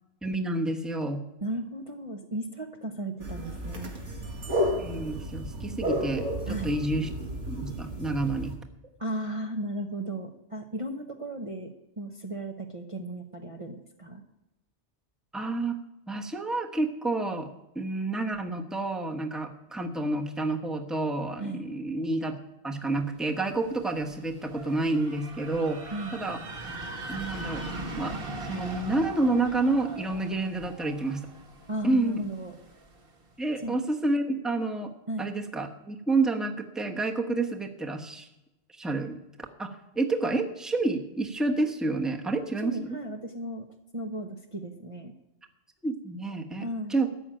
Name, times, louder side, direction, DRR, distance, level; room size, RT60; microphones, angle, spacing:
voice 1, 0.2-1.2 4.8-7.1 7.5-8.5 15.3-15.8 16.1-22.4 22.6-26.4 27.1-27.6 28.0-28.1 28.4-31.2 31.8-32.3 33.4-34.9 35.2-38.3 38.8-39.2 39.6-43.0 45.8-47.1, right 2 dB, ahead, 3 dB, 1.1 m, -29 dB
voice 2, 1.4-3.9 6.4-6.7 9.0-14.2 21.4-21.6 25.9-26.1 31.7-32.5 33.6-33.8 35.1-35.3 42.6-43.7 43.9-45.1 46.6-47.0, right 1 dB, 30° right, 2 dB, 0.9 m, -35 dB
sound 1, 3.2-8.5, equal, 85° right, 2.4 m, -32 dB
sound 2, 23.2-33.1, right 2 dB, 50° right, 1.6 m, -40 dB
14.0 x 6.2 x 8.9 m, 0.95 s
omnidirectional pair, 1.2 m